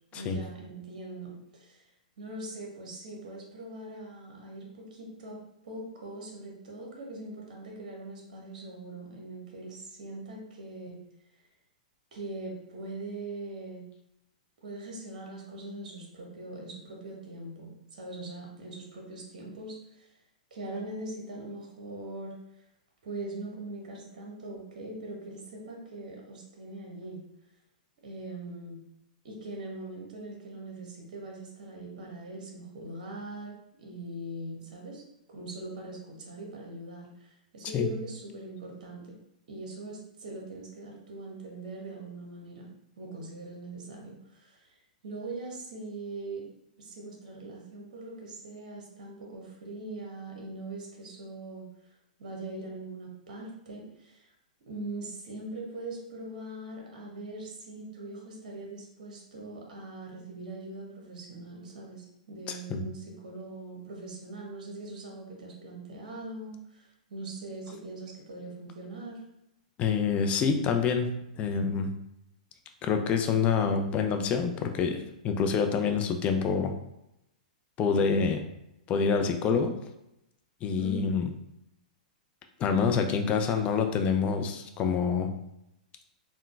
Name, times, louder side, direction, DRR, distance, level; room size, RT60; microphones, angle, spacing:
voice 1, 0.1-1.9 2.2-5.4 5.6-11.0 12.1-13.9 14.6-20.1 20.5-22.4 23.0-27.2 28.0-28.8 29.2-35.0 35.3-39.2 39.5-42.7 43.0-44.7 45.0-46.4 46.8-51.7 52.2-54.3 54.7-69.2 80.8-81.1, right 2 dB, 60° right, -1 dB, 0.9 m, -41 dB
voice 2, 62.5-62.8 69.8-71.1 71.4-71.9 72.8-76.7 77.8-78.4 78.9-79.7 80.6-81.3 82.6-85.3, left 6 dB, 25° left, 5 dB, 0.4 m, -27 dB
3.7 x 2.1 x 2.4 m, 0.84 s
hypercardioid pair, 115°, 5 cm